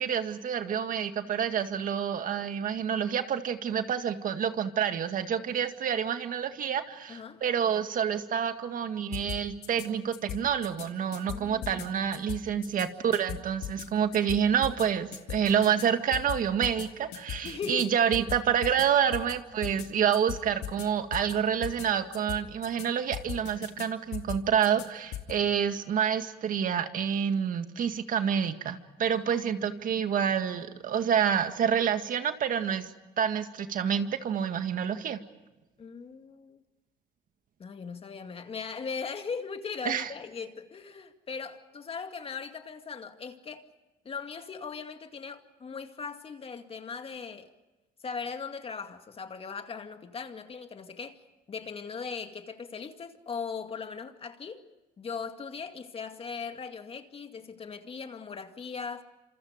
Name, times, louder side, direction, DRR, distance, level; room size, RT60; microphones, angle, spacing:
voice 1, 0.0-32.9 33.2-35.2 39.9-40.1, right 8 dB, 55° right, 2.0 m, -28 dB
voice 2, 7.1-7.4 11.3-11.8 17.4-17.9 29.1-29.7 35.8-36.6 37.6-43.6 44.0-47.5 48.0-51.2 51.5-54.6 55.0-59.0, left 5 dB, 35° left, 2.2 m, -39 dB
sound 1, 9.1-9.9 10.1-10.9 11.1-11.9 12.1-12.9 13.1-13.9 14.1-14.9 15.1-16.9 17.1-17.9 18.1-18.9 19.1-19.3 19.6-19.9 20.1-20.9 21.1-21.3 21.6-21.9 22.1-22.9 23.1-23.9 24.1-24.9 25.1-25.3, left 11 dB, 85° left, 2.6 m, -38 dB
28.0 x 27.5 x 5.1 m
cardioid pair, 110°, 17 cm